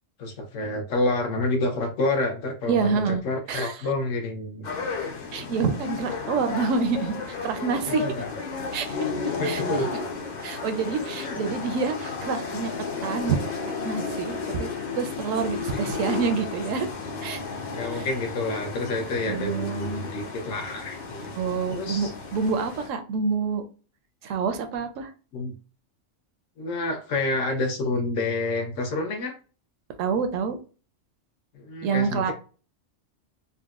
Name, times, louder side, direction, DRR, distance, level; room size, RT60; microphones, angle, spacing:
voice 1, 0.2-4.7 7.9-8.3 9.4-9.9 11.2-11.4 15.9-16.0 17.7-22.1 25.3-25.5 26.6-29.4 31.5-32.3, left 2 dB, 80° left, 4 dB, 1.1 m, -28 dB
voice 2, 2.7-3.2 3.5-3.7 5.3-8.1 8.7-9.6 10.4-12.7 13.0-13.4 13.8-16.9 17.2-17.4 18.0-18.1 19.3-20.0 21.3-23.6 24.2-25.1 30.0-30.6 31.8-32.3, right 5 dB, 75° right, 7 dB, 0.9 m, -27 dB
sound 1, 4.6-22.9, left 4 dB, 50° left, 0.6 m, -33 dB
3.8 x 2.1 x 2.3 m, 0.36 s
omnidirectional pair, 1.3 m